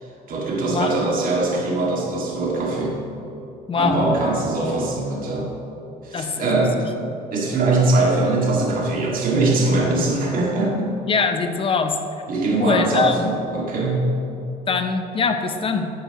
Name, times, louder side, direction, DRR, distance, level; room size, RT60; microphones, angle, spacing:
voice 1, 0.0-3.0 3.7-5.5 6.0-6.8 7.3-10.9 12.3-14.0, right 2 dB, 55° right, -2 dB, 2.2 m, -22 dB
voice 2, 3.7-4.0 6.1-6.9 11.1-12.0 12.6-13.3 14.7-15.9, left 5 dB, 30° left, 7 dB, 0.8 m, -23 dB
9.7 x 9.1 x 3.1 m, 2.9 s
cardioid pair, 110°, 17 cm